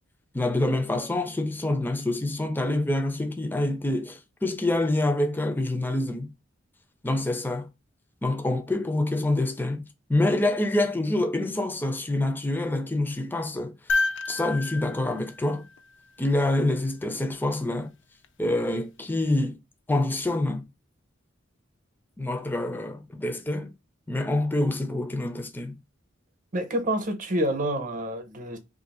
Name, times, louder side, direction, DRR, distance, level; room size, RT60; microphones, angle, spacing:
voice 1, 0.3-6.3 7.0-7.7 8.2-9.8 10.1-14.0 14.3-15.6 16.2-17.9 18.4-19.6 19.9-20.6 22.2-23.7 24.1-25.8, left 2 dB, 10° left, 0.4 m, -26 dB
sound 1, 13.9-16.2 18.2-18.3, left 3 dB, 65° left, 0.5 m, -30 dB
voice 2, 26.5-28.6, right 1 dB, 45° right, 0.8 m, -28 dB
2.8 x 2.6 x 4.1 m
head